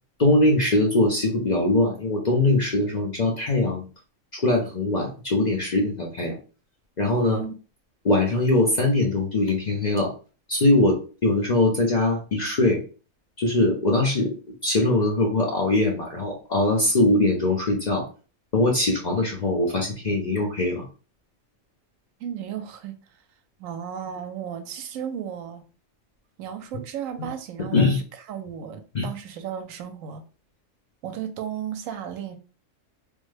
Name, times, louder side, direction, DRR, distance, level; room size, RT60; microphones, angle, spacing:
voice 1, 0.2-3.8 4.3-6.4 7.0-7.4 8.0-10.1 10.5-12.8 13.4-14.4 14.6-18.1 18.5-20.9 27.2-27.3 27.7-28.0 28.9-29.1, left 2 dB, 45° left, 0.6 m, -22 dB
voice 2, 7.2-7.5 22.2-23.0 23.6-25.6 26.4-30.2 31.0-32.4, right 9 dB, 85° right, 1.0 m, -34 dB
3.5 x 2.1 x 3.1 m
omnidirectional pair, 1.4 m